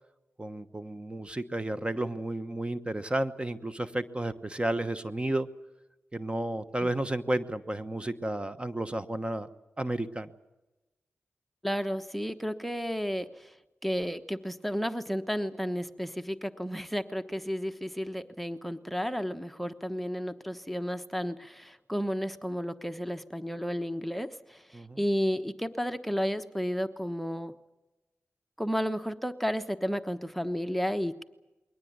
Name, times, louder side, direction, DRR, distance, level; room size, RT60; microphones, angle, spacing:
voice 1, 0.4-5.5 6.1-9.5 9.8-10.3 24.7-25.0, right 1 dB, 25° right, 11 dB, 1.1 m, -32 dB
voice 2, 11.6-13.6 13.8-27.5 28.6-31.2, equal, ahead, 9 dB, 1.1 m, -32 dB
22.0 x 18.5 x 9.5 m, 1.1 s
cardioid pair, 55°, 5 cm